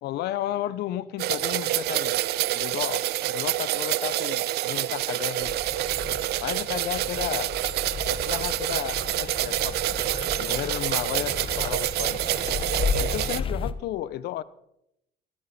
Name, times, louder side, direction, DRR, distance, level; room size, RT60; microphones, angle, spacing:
voice 1, 0.0-2.2 2.5-5.6 6.4-7.5 8.0-10.0 10.4-12.2 12.9-14.4, left 13 dB, 75° left, 0.7 m, -33 dB
sound 1, 1.2-13.4, right 15 dB, 75° right, 0.6 m, -27 dB
sound 2, 5.4-13.7, left 5 dB, 30° left, 0.9 m, -34 dB
16.5 x 13.5 x 4.2 m
cardioid pair, 110°, 17 cm